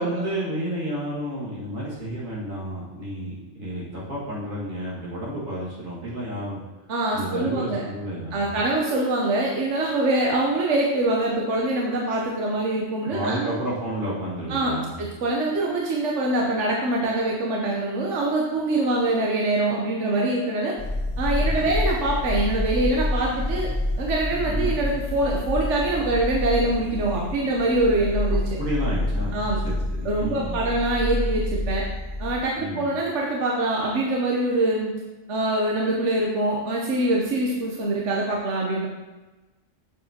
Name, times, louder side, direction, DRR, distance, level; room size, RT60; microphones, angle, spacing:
voice 1, 0.0-6.6 7.1-8.5 13.1-15.0 21.4-21.7 24.4-24.7 28.3-29.4 29.6-30.6 32.5-32.9, right 1 dB, 85° right, -6 dB, 2.4 m, -31 dB
voice 2, 6.9-7.8 8.3-13.5 14.5-20.7 21.2-23.7 24.0-28.4 29.3-29.6 30.0-31.8 32.2-34.9 35.3-38.9, right 2 dB, 65° right, -2 dB, 1.2 m, -24 dB
sound 1, 20.8-32.4, left 1 dB, 35° left, 1.3 m, -28 dB
7.4 x 7.1 x 2.9 m, 1.2 s
omnidirectional pair, 1.3 m